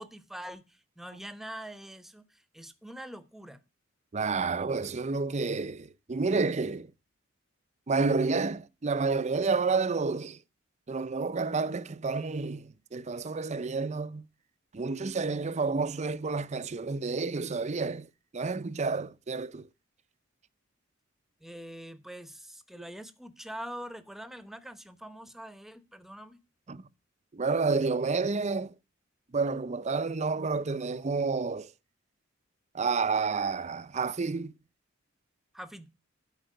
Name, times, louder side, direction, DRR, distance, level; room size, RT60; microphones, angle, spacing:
voice 1, 0.0-3.6 21.4-26.4 35.5-35.9, equal, ahead, 0.9 m, -44 dB
voice 2, 4.1-6.9 7.9-10.4 10.9-14.2 14.7-18.1 18.3-19.7 22.7-22.8 26.7-26.8 27.3-28.7 29.3-31.7 32.7-34.5, right 4 dB, 35° right, 0.5 m, -30 dB
11.5 x 5.6 x 6.5 m
head